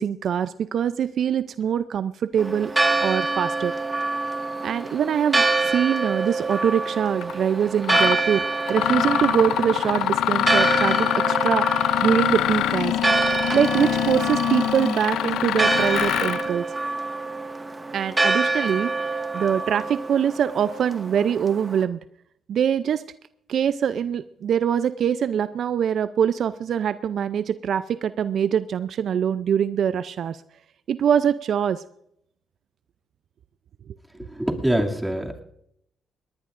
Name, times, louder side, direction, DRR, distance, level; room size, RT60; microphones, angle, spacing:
voice 1, 0.0-2.7 3.0-3.7 4.6-8.4 8.7-12.9 13.5-16.7 17.9-19.1 19.3-22.0 22.5-23.0 23.5-30.4 30.9-31.8, right 8 dB, 65° right, 14 dB, 0.5 m, -23 dB
Church bell, 2.4-21.8, right 3 dB, 25° right, 1.7 m, -26 dB
Mechanisms, 7.2-7.3 7.8-8.2 8.7-16.5, left 12 dB, 80° left, 0.5 m, -24 dB
voice 2, 34.1-35.4, right 1 dB, 10° right, 1 dB, 2.5 m, -25 dB
19.5 x 19.0 x 2.6 m, 0.74 s
supercardioid pair, 65°, 0 cm